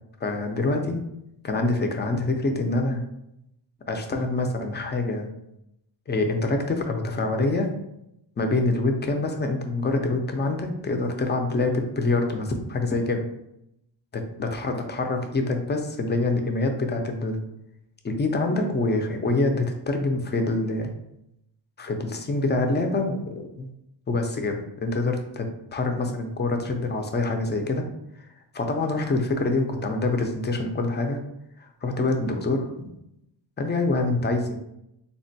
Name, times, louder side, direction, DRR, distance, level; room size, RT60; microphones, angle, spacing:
voice 1, 0.2-1.0 1.4-3.0 3.9-5.3 6.1-7.7 8.4-13.3 14.1-17.4 18.0-20.9 21.8-23.7 24.1-27.9 28.5-31.2 31.6-32.9 33.6-34.6, left 2 dB, 25° left, 4 dB, 0.4 m, -25 dB
3.7 x 2.1 x 2.7 m, 0.83 s
cardioid pair, 80°, 45 cm